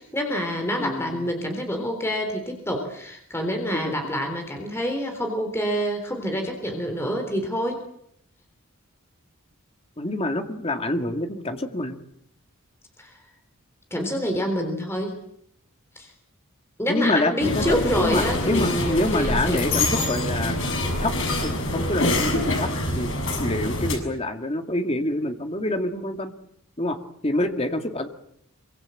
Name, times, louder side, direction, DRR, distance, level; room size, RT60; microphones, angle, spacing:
voice 1, 0.0-7.8 13.0-13.2 13.9-15.1 16.0-16.1 16.8-20.1, equal, 10° left, 3 dB, 3.7 m, -27 dB
voice 2, 0.8-1.3 3.7-4.2 10.0-12.0 16.9-21.2 21.4-23.1 23.4-26.3 26.8-28.1, left 1 dB, 25° left, 5 dB, 2.2 m, -27 dB
sound 1, 17.4-24.0, left 1 dB, 60° left, 6.9 m, -25 dB
25.5 x 24.5 x 7.8 m, 0.73 s
head